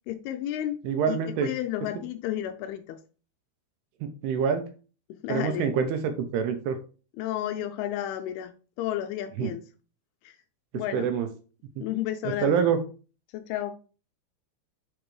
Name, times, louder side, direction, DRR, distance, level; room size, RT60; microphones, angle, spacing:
voice 1, 0.1-0.8 1.1-3.0 5.1-5.7 7.2-9.6 10.2-10.4 10.7-11.1 11.8-12.6 13.3-13.8, left 12 dB, 85° left, 2.3 m, -32 dB
voice 2, 0.8-1.5 4.0-4.7 5.3-6.8 9.4-9.5 10.9-11.3 11.8-11.9 12.2-12.8, right 7 dB, 80° right, 2.6 m, -26 dB
8.8 x 4.5 x 3.1 m
omnidirectional pair, 5.0 m